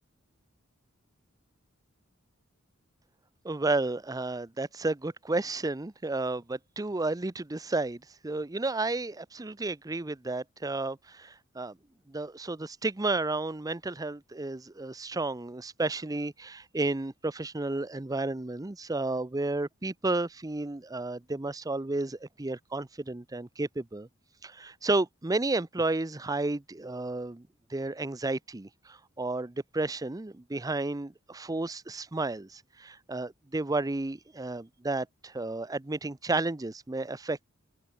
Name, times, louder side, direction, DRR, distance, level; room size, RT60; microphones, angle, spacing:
voice 1, 3.4-11.8 12.1-24.1 24.4-37.4, right 2 dB, 15° right, 0.6 m, -32 dB
open air
head